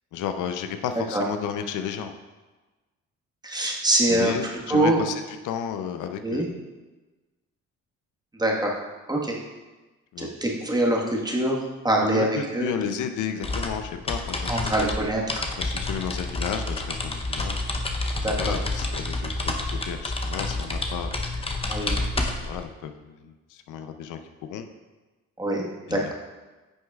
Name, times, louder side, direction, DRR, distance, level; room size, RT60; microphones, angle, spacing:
voice 1, 0.1-2.1 4.1-6.4 10.1-10.3 12.1-14.7 15.6-17.6 18.4-21.1 21.9-22.1 22.4-24.7 25.9-26.1, left 8 dB, 80° left, 7 dB, 0.6 m, -32 dB
voice 2, 3.4-5.0 6.2-6.5 8.3-8.7 9.1-9.3 10.2-12.7 14.5-15.5 18.2-18.4 21.7-21.9 25.4-26.1, right 1 dB, 15° right, -2 dB, 1.4 m, -24 dB
sound 1, 13.4-22.6, left 2 dB, 20° left, 0.7 m, -29 dB
9.8 x 6.3 x 2.4 m, 1.2 s
cardioid pair, 90°, 30 cm